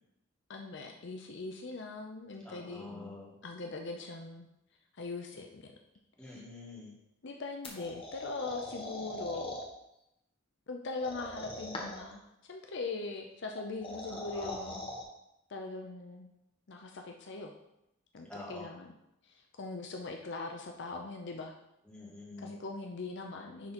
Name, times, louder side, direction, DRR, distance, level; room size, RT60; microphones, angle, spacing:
voice 1, 0.5-3.1 3.4-4.5 4.9-5.7 6.2-6.4 7.2-9.6 10.7-14.8 15.5-16.3 16.7-17.5 18.1-18.9 19.2-21.6 22.4-23.7, left 3 dB, 60° left, 3 dB, 0.6 m, -41 dB
voice 2, 2.4-3.3 5.3-5.4 6.2-6.9 14.1-14.8 18.3-18.7 21.9-22.5, left 2 dB, 5° left, -6 dB, 2.1 m, -46 dB
sound 1, 7.6-9.6 11.0-12.1 13.6-15.0, left 1 dB, 25° left, 1.3 m, -41 dB
10.0 x 3.8 x 4.3 m, 0.85 s
head